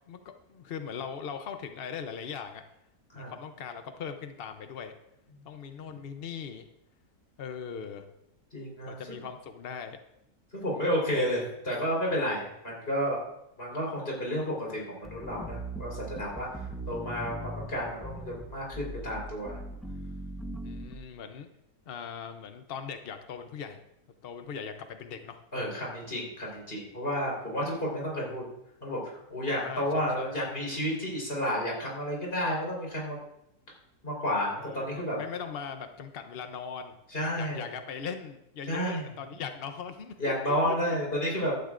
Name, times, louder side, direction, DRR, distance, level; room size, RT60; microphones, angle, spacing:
voice 1, 0.1-2.6 3.1-4.9 5.4-6.7 7.4-8.1 8.9-10.0 20.6-21.5 21.9-23.8 24.2-25.4 29.5-30.3 34.6-37.0 37.4-40.6, left 6 dB, 60° left, 7 dB, 0.6 m, -40 dB
voice 2, 8.5-9.2 10.5-13.2 13.6-19.6 25.5-28.4 28.8-33.2 34.0-35.2 37.1-37.7 38.7-39.0 40.2-41.5, equal, 30° left, -3 dB, 4.3 m, -31 dB
sound 1, 15.0-21.0, right 1 dB, ahead, 0.6 m, -40 dB
16.0 x 11.5 x 2.5 m, 0.83 s
omnidirectional pair, 1.9 m